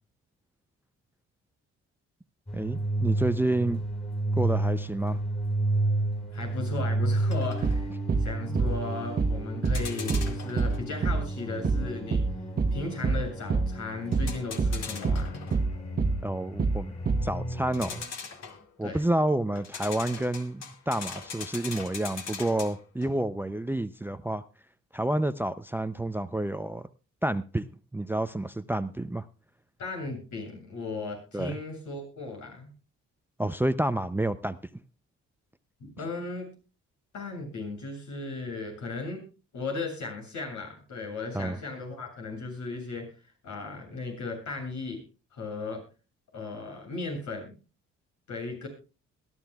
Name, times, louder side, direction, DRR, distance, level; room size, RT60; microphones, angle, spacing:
sound 1, 2.5-18.0, right 2 dB, 20° left, 3.9 m, -32 dB
voice 1, 2.5-3.8 4.4-5.2 8.5-8.6 16.2-16.9 17.2-18.1 18.8-24.4 24.9-26.9 27.2-27.6 27.9-29.3 31.3-31.5 33.4-34.6 41.3-41.6, right 1 dB, 5° right, 14 dB, 0.5 m, -29 dB
voice 2, 6.3-7.9 8.2-12.2 12.7-15.4 18.8-19.0 29.8-32.7 35.8-36.5 37.1-39.2 39.5-43.1 43.4-45.0 45.3-45.8 46.3-47.5 48.3-48.7, left 3 dB, 75° left, 1 dB, 7.6 m, -36 dB
sound 2, 7.3-7.9 9.6-10.9 14.1-15.7 17.7-18.8 19.6-23.2, left 5 dB, 60° left, 2.2 m, -41 dB
sound 3, 7.6-7.8 8.1-8.3 8.5-8.7 9.2-9.4 9.6-9.8 10.1-10.3 10.6-10.8 11.0-11.2 11.6-11.8 12.1-12.3 12.6-12.8 13.0-13.2 13.5-13.7 14.1-14.3 14.6-14.8 15.0-15.2 15.5-15.7 16.0-16.2 16.6-16.8 17.1-17.3, right 4 dB, 30° right, 1.2 m, -25 dB
22.0 x 12.5 x 2.3 m, 0.33 s
cardioid pair, 90°, 30 cm